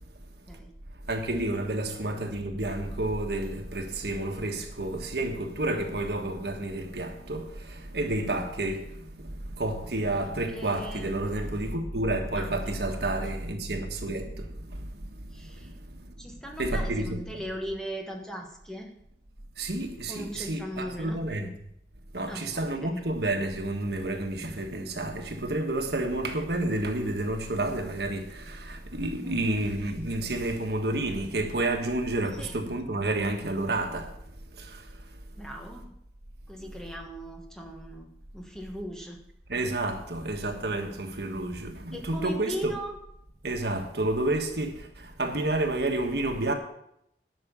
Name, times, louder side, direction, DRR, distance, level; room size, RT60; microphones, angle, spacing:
voice 1, 1.1-8.9 9.1-14.5 14.8-14.9 15.4-15.5 16.6-17.4 19.6-21.5 22.1-34.1 34.6-34.8 39.5-42.7 43.4-46.5, right 2 dB, 65° right, 1.5 m, -30 dB
voice 2, 10.5-11.2 12.3-13.1 15.3-15.7 16.2-18.9 20.1-21.2 22.3-23.0 29.2-29.6 32.4-32.6 35.4-35.9 36.5-39.2 41.9-43.0, equal, 5° left, 1.3 m, -39 dB
11.0 x 6.3 x 7.1 m
head